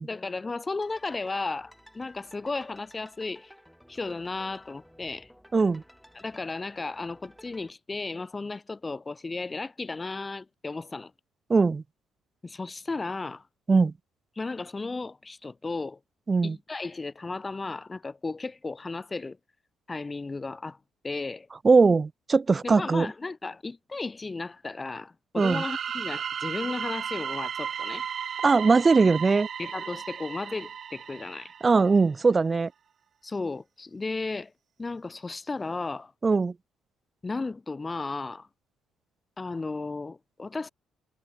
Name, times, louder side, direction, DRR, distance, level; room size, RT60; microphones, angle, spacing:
voice 1, 0.0-3.5 3.9-5.3 6.1-11.1 12.4-13.4 14.4-16.0 16.4-19.4 19.9-20.8 21.0-21.5 22.6-28.1 29.6-31.5 33.2-34.5 34.8-36.1 37.2-38.5 39.4-40.7, left 3 dB, 20° left, 1.2 m, -34 dB
sound 1, 0.8-7.7, equal, ahead, 3.6 m, -55 dB
voice 2, 5.5-5.8 11.5-11.8 13.7-13.9 16.3-16.6 21.6-23.1 25.4-25.6 28.4-29.5 31.6-32.7 36.2-36.5, right 4 dB, 30° right, 0.4 m, -21 dB
sound 2, 25.4-32.0, right 8 dB, 50° right, 0.8 m, -35 dB
cardioid pair, 95°, 0 cm